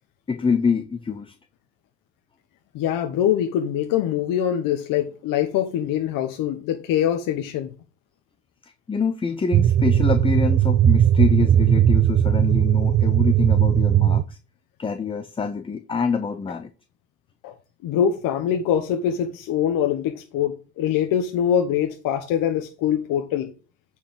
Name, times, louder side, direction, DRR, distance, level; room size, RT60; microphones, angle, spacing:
voice 1, 0.3-1.4 8.6-14.4 14.8-16.7, left 5 dB, 15° left, 0.6 m, -26 dB
voice 2, 2.7-7.7 17.4-17.5 17.8-23.5, left 9 dB, 70° left, 1.1 m, -23 dB
sound 1, 9.5-14.2, right 10 dB, 30° right, 0.5 m, -18 dB
8.7 x 4.9 x 3.7 m
cardioid pair, 110°, 35 cm